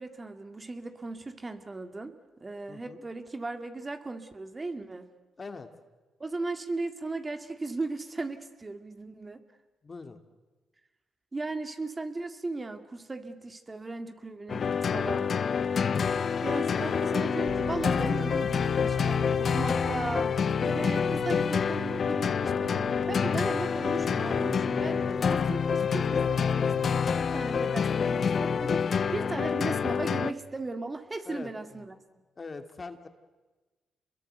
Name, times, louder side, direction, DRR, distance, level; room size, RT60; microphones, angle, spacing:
voice 1, 0.0-5.1 6.2-9.4 11.3-15.3 16.4-28.2 28.5-31.9, right 3 dB, 25° right, 7 dB, 2.2 m, -37 dB
voice 2, 2.7-3.0 5.4-5.7 9.8-10.2 21.4-21.6 22.1-22.2 26.3-26.6 27.8-28.1 29.1-29.5 31.3-31.8 32.4-33.1, left 4 dB, 40° left, 7 dB, 2.4 m, -44 dB
sound 1, 14.5-30.3, left 6 dB, 55° left, 0.8 m, -27 dB
sound 2, 17.5-27.2, right 4 dB, 75° right, 3.7 m, -43 dB
28.0 x 22.0 x 8.1 m, 1.2 s
supercardioid pair, 60°, 0 cm